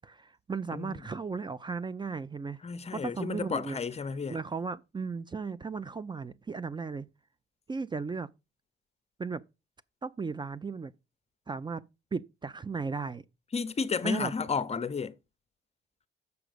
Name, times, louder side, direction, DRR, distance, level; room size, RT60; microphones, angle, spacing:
voice 1, 0.0-2.6 2.9-3.8 4.3-7.1 7.7-8.3 9.2-9.4 10.0-10.9 11.5-11.8 12.1-13.2 14.0-14.3, right 4 dB, 25° right, 0.4 m, -35 dB
voice 2, 2.6-4.4 13.5-15.1, left 5 dB, 30° left, 0.7 m, -32 dB
7.0 x 5.0 x 6.5 m
cardioid pair, 90°, 20 cm